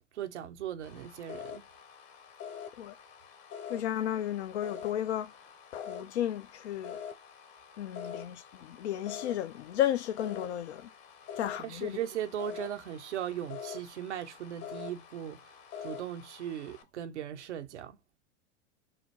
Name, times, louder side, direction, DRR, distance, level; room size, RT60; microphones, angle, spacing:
voice 1, 0.1-1.7 11.6-15.5 15.8-18.0, right 10 dB, 85° right, 0.9 m, -38 dB
sound 1, 0.8-16.8, left 7 dB, 45° left, 1.2 m, -46 dB
voice 2, 3.7-5.3 5.7-7.0 7.8-10.9 11.4-12.0, left 11 dB, 75° left, 0.7 m, -33 dB
5.0 x 2.0 x 4.2 m
hypercardioid pair, 105°, 34 cm